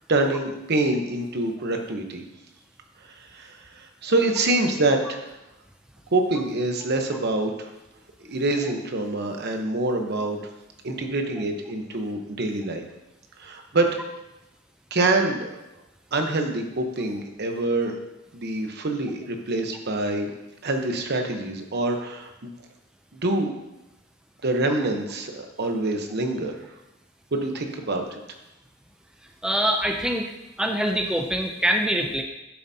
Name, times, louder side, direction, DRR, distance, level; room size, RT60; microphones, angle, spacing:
voice 1, 0.1-2.2 3.3-5.4 6.1-7.7 8.3-10.4 10.8-12.8 13.4-14.0 14.9-15.5 16.1-18.0 18.3-20.3 20.6-22.5 23.2-23.5 24.4-26.5 27.3-28.1, right 2 dB, 55° right, 4 dB, 1.0 m, -25 dB
voice 2, 29.4-30.3 30.6-32.2, right 1 dB, 5° right, 3 dB, 0.4 m, -24 dB
10.5 x 7.1 x 2.8 m, 0.97 s
head